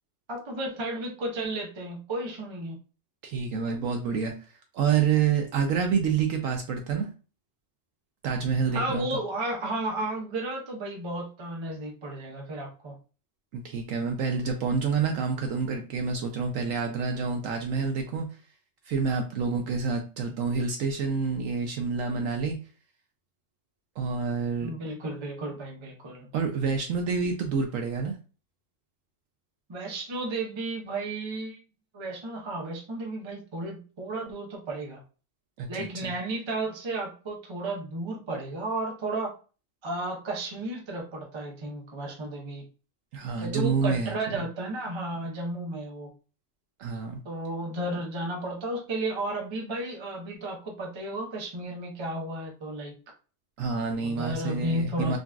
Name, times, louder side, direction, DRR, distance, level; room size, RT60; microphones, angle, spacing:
voice 1, 0.3-2.8 8.7-13.0 24.6-26.3 29.7-31.6 31.9-35.0 35.7-39.3 39.8-42.6 43.4-46.1 47.2-52.9 54.0-55.2, right 2 dB, 35° right, 0 dB, 0.5 m, -33 dB
voice 2, 3.2-4.3 4.7-7.1 8.2-9.1 13.5-18.3 18.9-22.6 24.0-24.7 26.3-28.2 35.6-36.1 43.1-44.4 46.8-47.2 53.6-55.2, right 5 dB, 70° right, 3 dB, 0.8 m, -28 dB
3.8 x 2.3 x 2.3 m, 0.35 s
omnidirectional pair, 1.7 m